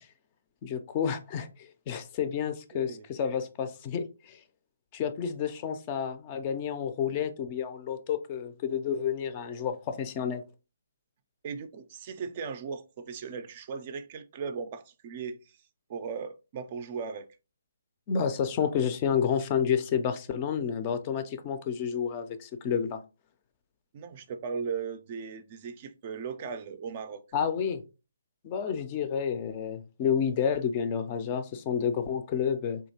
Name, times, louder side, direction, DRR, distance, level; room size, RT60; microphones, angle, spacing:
voice 1, 0.6-1.5 1.9-4.4 4.9-10.4 18.1-23.0 27.3-27.8 28.4-32.8, left 7 dB, 30° left, 0.4 m, -30 dB
voice 2, 2.7-3.1 11.4-15.6 15.9-17.3 23.9-27.2, right 5 dB, 35° right, 0.4 m, -37 dB
3.5 x 2.8 x 2.7 m
figure-of-eight pair, 135°, 0 cm